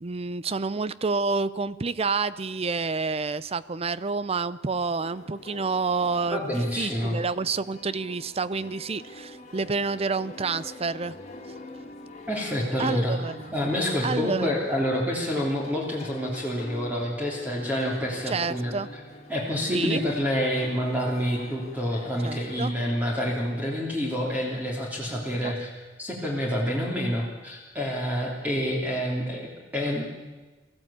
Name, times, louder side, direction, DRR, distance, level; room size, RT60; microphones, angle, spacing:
voice 1, 0.0-6.4 6.8-11.1 12.8-13.5 14.0-14.6 18.3-18.9 19.7-20.0 22.2-22.7 25.1-25.5, right 4 dB, 30° right, 17 dB, 0.5 m, -29 dB
sound 1, 5.0-23.3, left 2 dB, 40° left, 2.5 m, -45 dB
voice 2, 6.3-7.2 12.3-13.2 13.5-18.7 19.3-25.7 26.0-30.0, equal, 10° right, -3 dB, 3.1 m, -28 dB
22.5 x 14.5 x 8.7 m, 1.2 s
head